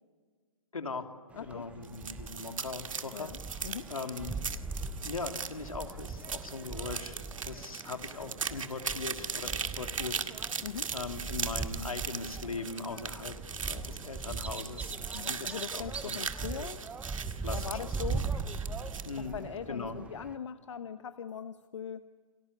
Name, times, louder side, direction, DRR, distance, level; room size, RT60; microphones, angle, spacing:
voice 1, 0.7-3.6 3.9-4.4 5.0-10.2 10.9-13.4 13.6-14.9 15.2-16.2 17.4-17.8 18.2-18.3 19.0-19.4 19.7-20.0, left 4 dB, 85° left, 6 dB, 3.1 m, -40 dB
voice 2, 1.3-1.7 3.1-3.9 10.6-10.9 15.1-16.8 17.5-18.3 19.2-22.1, left 7 dB, 60° left, 11 dB, 1.1 m, -41 dB
sound 1, 1.3-20.4, right 4 dB, 5° right, 0.9 m, -40 dB
sound 2, 1.8-19.2, right 6 dB, 70° right, 2.1 m, -39 dB
29.5 x 22.0 x 8.5 m, 1.5 s
hypercardioid pair, 140°, 17 cm